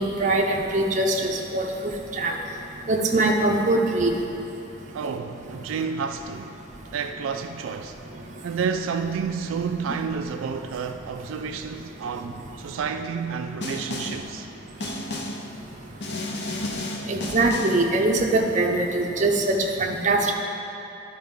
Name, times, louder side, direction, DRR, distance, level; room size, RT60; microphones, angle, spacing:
voice 1, 0.0-1.6 2.2-2.3 2.9-4.1 17.1-20.3, right 2 dB, 35° right, 0.6 m, -22 dB
voice 2, 4.9-6.6 6.9-8.0 8.4-14.5, right 6 dB, 80° right, 0.3 m, -30 dB
Snare drum, 13.6-14.3 14.8-15.5 16.0-17.9, left 1 dB, 55° left, 0.7 m, -32 dB
11.5 x 4.7 x 3.6 m
head